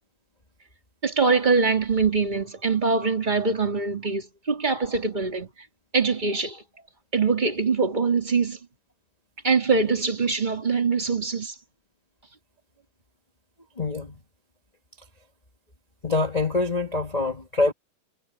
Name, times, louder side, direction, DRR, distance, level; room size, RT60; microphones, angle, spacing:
voice 1, 1.0-5.5 5.9-6.6 7.1-8.6 9.4-11.5, right 4 dB, 15° right, 2.1 m, -23 dB
voice 2, 13.8-14.2 16.0-17.7, left 3 dB, 15° left, 1.8 m, -25 dB
omnidirectional pair, 3.7 m